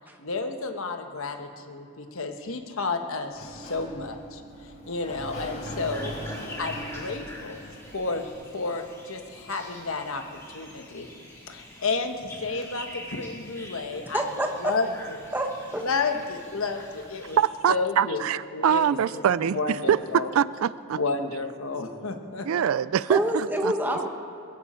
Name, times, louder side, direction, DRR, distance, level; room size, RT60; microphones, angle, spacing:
voice 1, 0.2-4.4 4.9-6.1 6.6-7.7 7.9-11.1 11.5-14.3 14.6-14.9 15.2-15.3 15.8-17.4 17.7-18.2 18.5-20.3 20.9-22.5, left 3 dB, 70° left, 5 dB, 1.3 m, -31 dB
Sliding door, 3.3-8.3, equal, 30° left, 2.2 m, -40 dB
sound 1, 5.7-17.4, left 1 dB, 10° left, 2.7 m, -45 dB
voice 2, 14.1-14.8 15.3-15.8 23.1-24.1, right 1 dB, 10° right, 3 dB, 1.1 m, -27 dB
voice 3, 17.4-21.0 22.4-23.7, right 8 dB, 70° right, 17 dB, 0.3 m, -24 dB
21.5 x 15.0 x 4.4 m, 2.6 s
head